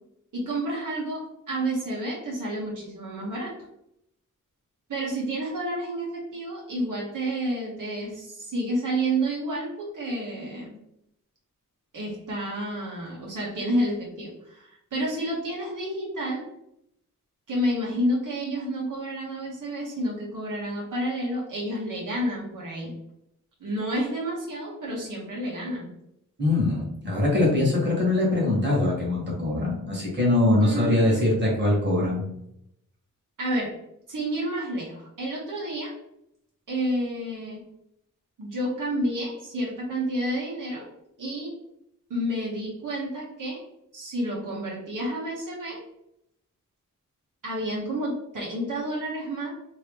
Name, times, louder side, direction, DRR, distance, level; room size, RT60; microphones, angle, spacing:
voice 1, 0.3-3.5 4.9-10.8 11.9-16.4 17.5-22.9 23.6-25.9 30.6-31.3 33.4-33.7 34.1-35.9 36.7-37.6 38.4-40.8 41.2-41.5 42.1-43.6 43.9-45.8 47.4-49.5, right 1 dB, 75° right, -4 dB, 1.1 m, -30 dB
voice 2, 26.4-32.2, left 2 dB, 35° right, -4 dB, 1.3 m, -22 dB
2.9 x 2.8 x 3.4 m, 0.78 s
wide cardioid pair, 115°, 32 cm